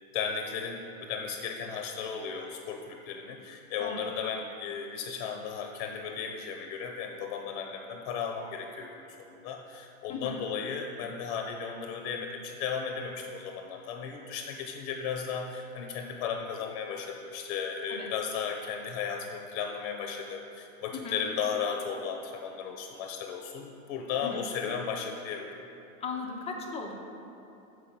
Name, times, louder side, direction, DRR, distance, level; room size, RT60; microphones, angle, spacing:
voice 1, 0.1-8.9 9.2-25.6, left 6 dB, 50° left, 3 dB, 0.8 m, -35 dB
voice 2, 26.0-26.9, left 4 dB, 15° left, 1 dB, 0.6 m, -37 dB
6.8 x 4.7 x 5.9 m, 2.9 s
supercardioid pair, 130°, 44 cm